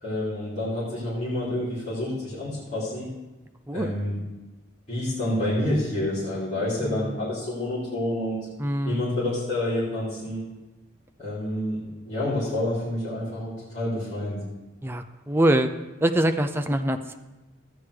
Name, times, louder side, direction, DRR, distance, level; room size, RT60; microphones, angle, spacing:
voice 1, 0.0-3.1 3.7-4.2 4.9-8.5 8.9-10.4 11.2-14.4, left 1 dB, 35° left, -10 dB, 3.4 m, -28 dB
voice 2, 6.8-7.2 8.6-9.1 14.8-15.7 16.0-17.2, right 1 dB, 10° right, 7 dB, 0.5 m, -24 dB
14.0 x 9.8 x 3.2 m, 1.1 s
head